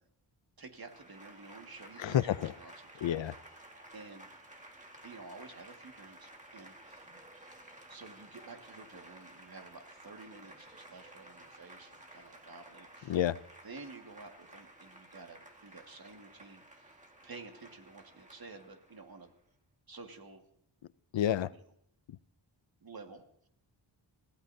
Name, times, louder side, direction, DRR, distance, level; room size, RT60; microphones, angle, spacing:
voice 1, 0.6-3.6 3.9-4.3 5.0-7.1 7.9-13.2 13.6-16.9 17.2-19.3 19.9-20.5 21.5-21.6 22.8-23.2, right 3 dB, 50° right, 4 dB, 2.0 m, -51 dB
Applause / Crowd, 0.7-19.3, right 1 dB, 15° right, 1.8 m, -54 dB
voice 2, 2.0-2.5 3.0-3.3 13.1-13.4 21.1-21.5, left 11 dB, 75° left, 17 dB, 0.6 m, -29 dB
29.5 x 15.5 x 2.7 m, 0.69 s
wide cardioid pair, 125°, 45 cm